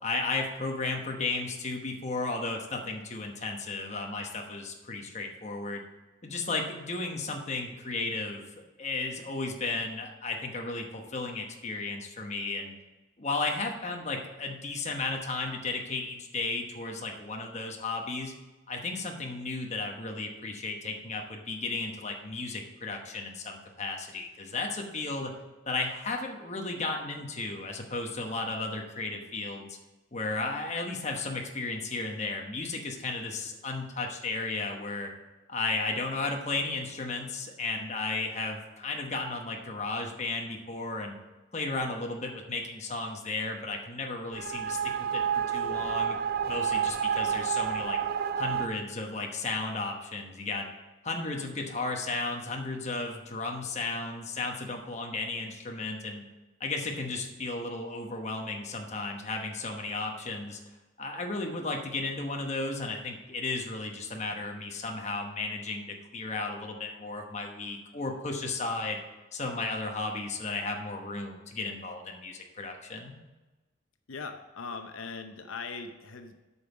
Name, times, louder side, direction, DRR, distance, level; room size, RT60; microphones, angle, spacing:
voice 1, 0.0-5.8 6.2-8.4 8.8-12.7 13.2-18.3 18.7-25.4 25.7-29.8 30.1-35.1 35.5-41.1 41.5-45.2 45.5-46.2 46.5-48.0 48.4-50.7 51.0-56.2 56.6-60.6 61.0-69.0 69.3-73.2, left 3 dB, 35° left, 2 dB, 1.1 m, -34 dB
sound 1, 44.3-48.7, right 8 dB, 50° right, 0.4 m, -29 dB
voice 2, 74.1-76.3, left 4 dB, 85° left, 6 dB, 0.7 m, -40 dB
8.4 x 5.4 x 6.0 m, 1.1 s
head